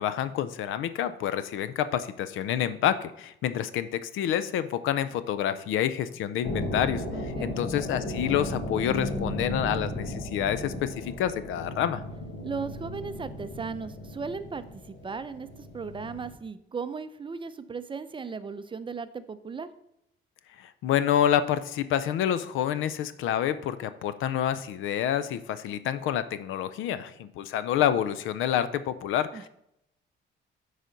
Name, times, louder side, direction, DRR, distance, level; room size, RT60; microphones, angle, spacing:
voice 1, 0.0-7.0 7.4-12.0 20.6-29.5, left 10 dB, 85° left, 13 dB, 0.5 m, -28 dB
sound 1, 6.4-16.3, left 1 dB, 65° left, 1.6 m, -35 dB
voice 2, 7.1-7.5 12.4-15.5 15.7-19.7 29.3-29.5, right 5 dB, 25° right, 12 dB, 0.5 m, -36 dB
8.1 x 5.0 x 3.9 m, 0.80 s
cardioid pair, 90°, 20 cm